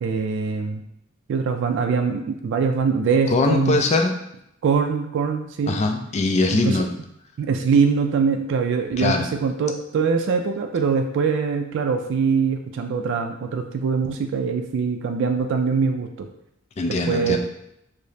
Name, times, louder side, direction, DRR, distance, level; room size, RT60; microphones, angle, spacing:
voice 1, 0.0-0.8 1.3-3.8 4.6-5.8 6.5-6.8 7.4-16.3 17.1-17.4, right 5 dB, 65° right, 4 dB, 0.3 m, -23 dB
voice 2, 3.3-4.2 5.7-6.9 9.0-9.3 16.8-17.4, left 3 dB, 35° left, 4 dB, 0.4 m, -21 dB
4.8 x 2.0 x 2.7 m, 0.80 s
head